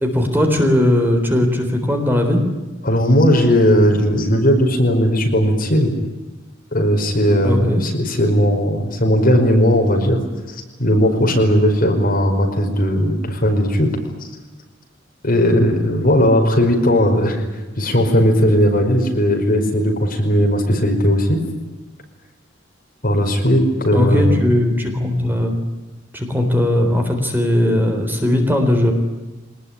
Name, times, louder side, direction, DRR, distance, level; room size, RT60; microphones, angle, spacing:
voice 1, 0.0-2.4 7.4-7.8 23.9-25.6 26.1-28.9, left 1 dB, 10° right, 4 dB, 3.9 m, -18 dB
voice 2, 2.8-5.9 6.7-10.2 10.8-13.9 14.2-14.3 15.2-17.4 17.8-21.4 23.0-24.4, equal, 50° left, 2 dB, 5.3 m, -16 dB
24.0 x 20.0 x 9.9 m, 1.2 s
head